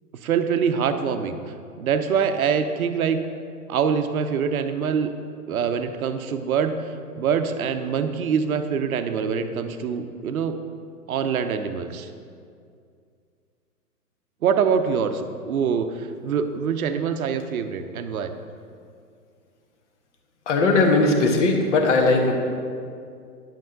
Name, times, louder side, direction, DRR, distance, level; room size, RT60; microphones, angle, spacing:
voice 1, 0.2-3.2 3.7-5.1 5.5-6.8 7.1-10.6 11.1-12.1 14.4-18.3, right 6 dB, 65° right, 8 dB, 0.8 m, -24 dB
voice 2, 20.5-22.3, left 3 dB, 50° left, 3 dB, 1.4 m, -19 dB
10.5 x 7.8 x 3.9 m, 2.3 s
hypercardioid pair, 140°, 47 cm